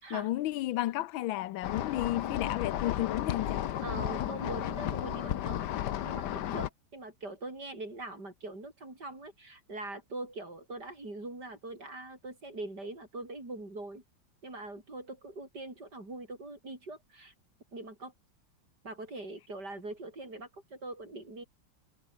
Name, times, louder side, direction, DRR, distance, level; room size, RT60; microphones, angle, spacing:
voice 1, 0.1-3.6, left 15 dB, 85° left, 1.5 m, -32 dB
sound 1, 1.6-6.7, left 11 dB, 65° left, 1.4 m, -33 dB
voice 2, 3.8-5.6 6.0-14.0 14.4-17.3 17.7-18.1 18.8-21.4, right 2 dB, 55° right, 7.9 m, -42 dB
omnidirectional pair, 2.1 m